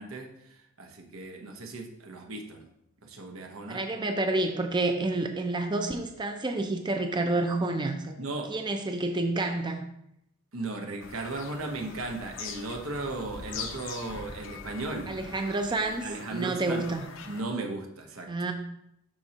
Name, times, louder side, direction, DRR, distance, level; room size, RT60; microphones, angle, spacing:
voice 1, 0.0-2.7 3.0-3.8 8.2-8.5 10.5-15.2 15.7-16.8 17.3-18.3, right 2 dB, 85° right, 3 dB, 1.1 m, -36 dB
voice 2, 3.7-8.2 8.5-9.9 15.1-17.1 18.3-18.5, right 2 dB, 20° right, 5 dB, 0.5 m, -29 dB
Bird vocalization bird call bird song, 11.0-17.4, left 5 dB, 65° left, 0.7 m, -43 dB
11.5 x 4.4 x 2.9 m, 0.79 s
head